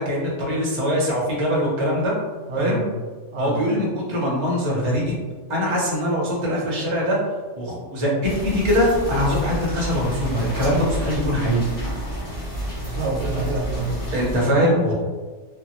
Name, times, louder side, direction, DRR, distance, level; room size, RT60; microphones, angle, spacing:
voice 1, 0.0-2.1 2.6-2.8 3.4-5.2 5.5-7.2 7.6-11.6 14.1-14.9, equal, 35° right, -3 dB, 0.5 m, -22 dB
voice 2, 2.5-2.9 3.3-3.6 12.8-14.0 14.6-14.9, right 2 dB, 65° right, -3 dB, 0.8 m, -27 dB
sound 1, 8.2-14.4, equal, 15° left, 1.0 m, -30 dB
2.6 x 2.2 x 2.9 m, 1.3 s
omnidirectional pair, 1.3 m